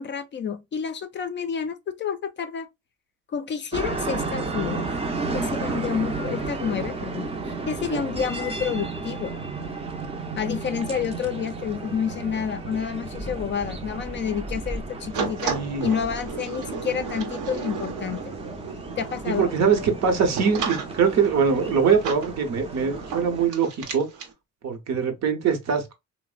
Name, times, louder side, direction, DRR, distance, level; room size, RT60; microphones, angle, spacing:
voice 1, 0.0-2.7 3.3-4.8 5.3-9.4 10.4-15.5 15.8-18.3 19.0-19.5, left 7 dB, 40° left, 0.4 m, -29 dB
sound 1, 3.7-23.5, right 3 dB, 20° right, 0.5 m, -33 dB
sound 2, 15.1-24.3, right 6 dB, 90° right, 0.8 m, -34 dB
voice 2, 15.4-15.9 19.2-24.1 24.6-25.9, right 6 dB, 60° right, 0.8 m, -23 dB
3.0 x 2.0 x 2.3 m
cardioid pair, 90°, 30 cm